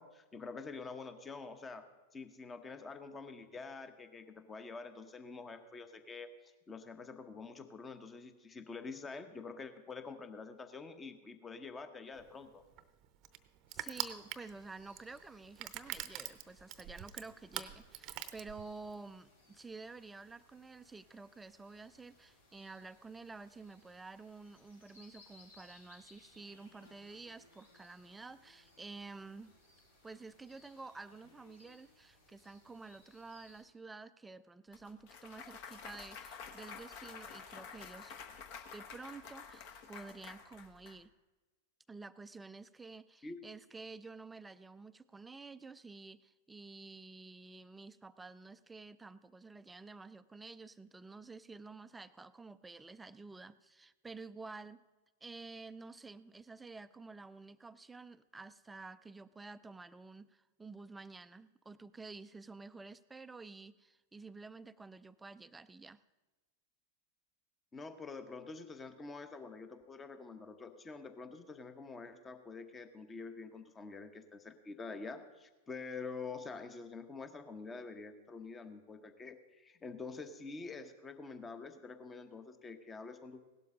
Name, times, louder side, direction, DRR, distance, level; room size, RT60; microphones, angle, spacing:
voice 1, 0.0-1.9 2.1-12.6 43.2-43.4 67.7-83.4, left 4 dB, 15° left, 10 dB, 1.0 m, -47 dB
Crushing, 12.2-19.0, right 13 dB, 40° right, 0.7 m, -44 dB
sound 1, 13.7-33.6, left 2 dB, 75° left, 4.4 m, -65 dB
voice 2, 13.7-29.5 30.0-38.1 38.7-41.1 41.9-54.8 55.2-66.0, right 3 dB, 10° right, 15 dB, 0.4 m, -51 dB
Clapping / Cheering / Applause, 34.7-41.0, left 6 dB, 45° left, 1.1 m, -50 dB
17.0 x 12.0 x 3.7 m, 1.2 s
figure-of-eight pair, 95°, 0 cm